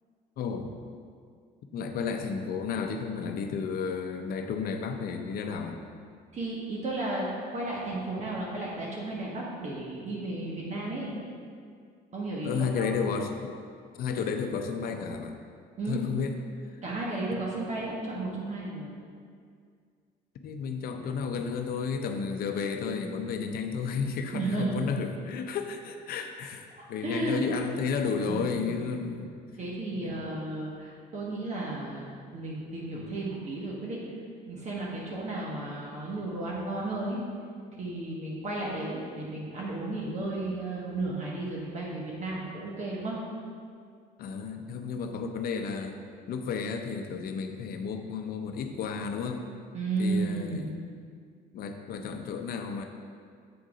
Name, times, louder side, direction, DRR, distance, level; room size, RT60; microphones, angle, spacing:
voice 1, 0.4-0.7 1.7-5.8 12.4-13.5 13.9-15.3 15.9-16.4 17.3-17.4 20.4-29.3 29.9-30.1 44.2-46.0 46.3-49.5 50.0-50.6 51.5-52.8, left 5 dB, 65° left, 5 dB, 0.7 m, -32 dB
voice 2, 6.3-11.1 12.1-12.9 15.8-16.0 16.8-18.9 24.3-24.9 26.8-27.5 28.2-28.7 29.6-32.1 32.3-34.0 34.5-37.2 37.8-43.2 49.7-50.8, right 2 dB, 45° right, -4 dB, 1.3 m, -33 dB
7.9 x 3.7 x 5.0 m, 2.2 s
cardioid pair, 110°, 17 cm